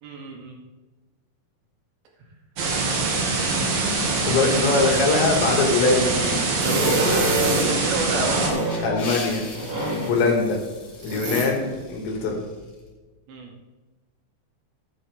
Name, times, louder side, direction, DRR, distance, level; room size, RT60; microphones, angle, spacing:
voice 1, 0.0-0.6 4.1-4.6 6.6-9.0 13.3-13.5, right 3 dB, 75° right, -1 dB, 4.4 m, -29 dB
sound 1, 2.6-8.5, right 3 dB, 55° right, 3.3 m, -24 dB
voice 2, 4.2-6.6 8.8-9.4 9.9-10.6 11.0-12.4, left 3 dB, 75° left, 1 dB, 4.4 m, -22 dB
sound 2, 6.6-7.8 8.2-9.0 9.5-10.3 11.0-11.5, right 1 dB, 35° right, 4.0 m, -26 dB
sound 3, 8.6-12.8, left 3 dB, 45° left, 3.0 m, -40 dB
14.5 x 10.0 x 3.6 m, 1.3 s
omnidirectional pair, 5.2 m